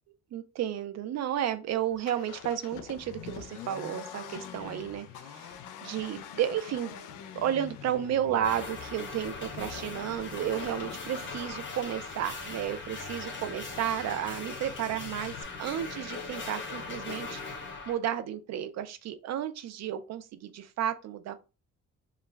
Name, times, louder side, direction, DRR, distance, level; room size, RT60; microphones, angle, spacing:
voice 1, 0.3-5.6 5.8-7.1 7.3-15.3 15.6-21.3, right 10 dB, 60° right, 0.5 m, -32 dB
Accelerating revving vroom, 1.9-15.4, left 8 dB, 85° left, 0.5 m, -46 dB
sound 1, 8.4-18.0, left 4 dB, 40° left, 0.9 m, -40 dB
2.3 x 2.2 x 3.1 m
cardioid pair, 90°, 30 cm